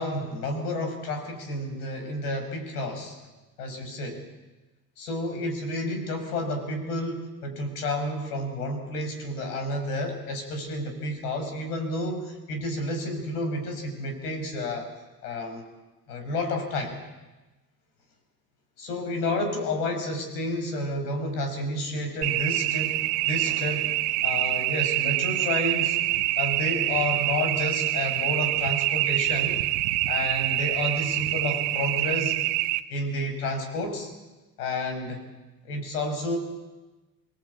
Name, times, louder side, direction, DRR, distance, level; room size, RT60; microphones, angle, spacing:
voice 1, 0.0-3.2 3.6-4.2 5.0-14.9 15.2-15.6 16.1-16.9 18.8-23.9 24.2-26.0 26.4-29.6 30.1-32.4 32.9-34.1 34.6-35.2 35.6-36.4, left 1 dB, 80° left, 5 dB, 5.9 m, -30 dB
sound 1, 22.2-32.8, right 17 dB, 65° right, 1.3 m, -26 dB
25.0 x 19.0 x 8.4 m, 1.1 s
hypercardioid pair, 70°, 45 cm